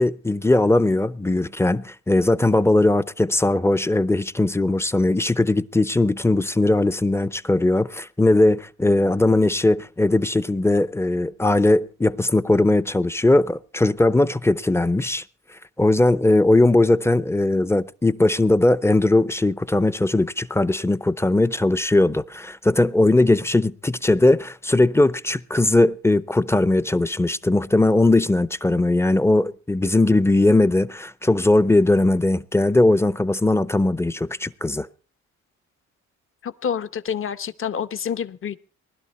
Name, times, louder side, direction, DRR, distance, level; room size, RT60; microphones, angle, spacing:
voice 1, 0.0-15.2 15.8-34.9, left 2 dB, 10° left, 0.6 m, -19 dB
voice 2, 36.4-38.6, left 7 dB, 45° left, 1.0 m, -28 dB
20.0 x 12.0 x 4.2 m
cardioid pair, 90°, 30 cm